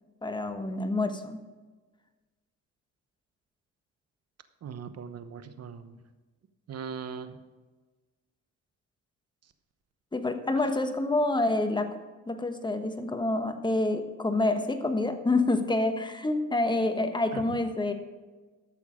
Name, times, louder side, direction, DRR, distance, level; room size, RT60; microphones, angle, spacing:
voice 1, 0.2-1.4 10.1-17.9, left 2 dB, 15° left, 7 dB, 1.2 m, -27 dB
voice 2, 4.6-5.9 6.7-7.3 17.3-17.4, right 6 dB, 55° right, 10 dB, 1.0 m, -39 dB
12.5 x 7.0 x 5.1 m, 1.3 s
cardioid pair, 90°, 30 cm